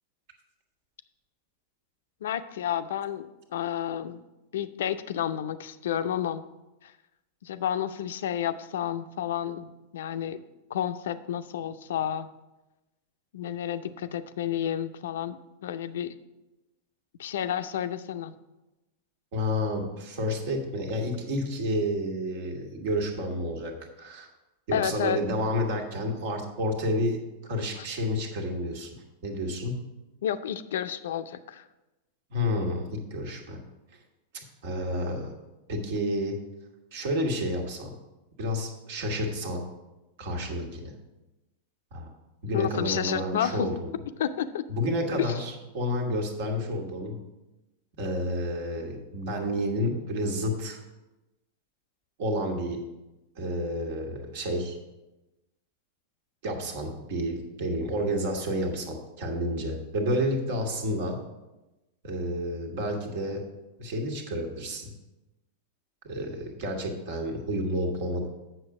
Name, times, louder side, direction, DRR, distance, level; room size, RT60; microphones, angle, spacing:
voice 1, 2.2-3.3 3.5-4.2 4.5-6.4 6.8-6.9 7.4-10.4 10.7-12.3 13.3-16.1 17.2-18.3 24.7-25.2 27.7-27.9 30.2-31.6 42.5-43.7 44.2-44.7 45.2-45.4, left 10 dB, 70° left, 11 dB, 0.5 m, -30 dB
voice 2, 19.3-24.3 24.7-29.8 32.3-33.6 34.6-35.3 35.7-36.4 36.9-37.9 38.4-39.7 40.2-40.9 41.9-42.1 42.4-44.0 44.7-47.2 48.0-50.8 52.2-52.8 53.3-54.8 56.4-61.2 62.0-63.5 63.8-64.9 66.0-68.3, equal, 60° right, 3 dB, 1.6 m, -30 dB
7.9 x 6.4 x 4.8 m, 1.0 s
hypercardioid pair, 95°, 0 cm